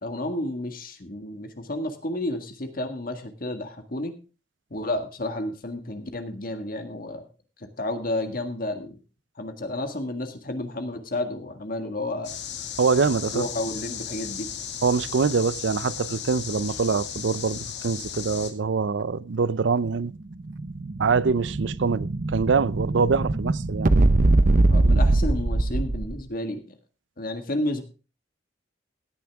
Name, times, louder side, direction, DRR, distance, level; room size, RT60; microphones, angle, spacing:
voice 1, 0.0-4.1 4.7-7.2 7.8-9.0 9.4-12.3 13.3-14.5 24.7-26.7 27.2-27.8, left 1 dB, 55° left, 1.7 m, -31 dB
sound 1, 12.2-18.5, left 8 dB, 70° left, 2.1 m, -35 dB
voice 2, 12.8-13.5 14.8-20.1 21.0-23.9, right 5 dB, 90° right, 0.5 m, -24 dB
Explosion, 20.1-26.2, right 2 dB, 50° right, 0.7 m, -22 dB
16.5 x 9.6 x 3.5 m
head